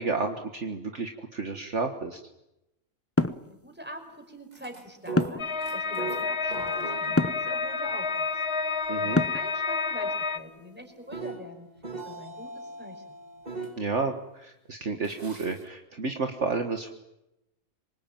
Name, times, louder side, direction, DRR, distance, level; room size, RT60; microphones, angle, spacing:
voice 1, 0.0-2.2 8.9-9.2 13.8-16.9, right 4 dB, 50° right, 4 dB, 1.9 m, -31 dB
sound 1, 3.2-3.5 5.2-5.5 7.2-7.5 9.1-9.5, left 2 dB, 10° left, 0.7 m, -24 dB
voice 2, 3.4-8.4 9.0-13.1, equal, 5° right, 4 dB, 5.1 m, -44 dB
sound 2, 4.5-13.8 15.0-15.6, right 3 dB, 25° right, 2.5 m, -41 dB
sound 3, 5.4-10.4, left 4 dB, 45° left, 1.5 m, -30 dB
26.5 x 24.0 x 9.1 m, 0.89 s
omnidirectional pair, 1.6 m